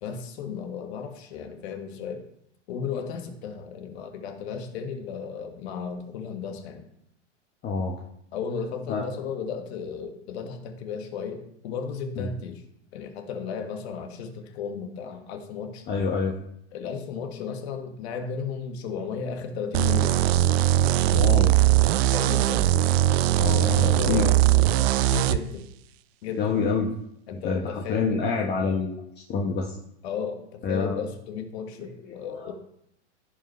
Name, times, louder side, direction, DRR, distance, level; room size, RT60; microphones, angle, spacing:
voice 1, 0.0-2.3 2.7-6.9 8.3-12.6 12.9-15.9 16.7-20.2 22.1-22.7 23.8-25.6 26.2-26.6 27.3-28.2 30.0-32.5, left 6 dB, 65° left, 5 dB, 1.7 m, -34 dB
voice 2, 7.6-8.0 8.9-9.1 12.2-12.3 15.9-16.4 21.1-21.5 23.4-24.3 26.4-26.9 27.4-29.0 29.3-29.8 30.6-31.0 31.8-32.5, left 4 dB, 30° left, 0 dB, 1.1 m, -27 dB
sound 1, 19.7-25.4, right 14 dB, 60° right, 0.5 m, -20 dB
15.5 x 5.4 x 3.2 m, 0.73 s
hypercardioid pair, 115°, 35 cm